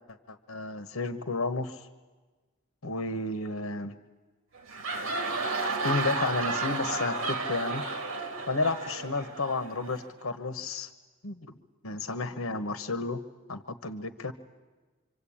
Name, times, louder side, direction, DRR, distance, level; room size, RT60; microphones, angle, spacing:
voice 1, 0.3-1.9 2.8-3.9 5.8-7.8 8.5-10.9 11.2-11.5 11.8-13.2 13.5-14.3, left 3 dB, 85° left, 9 dB, 1.2 m, -32 dB
sound 1, 4.6-10.1, right 3 dB, 85° right, 2.1 m, -32 dB
26.5 x 24.5 x 8.8 m, 1.3 s
head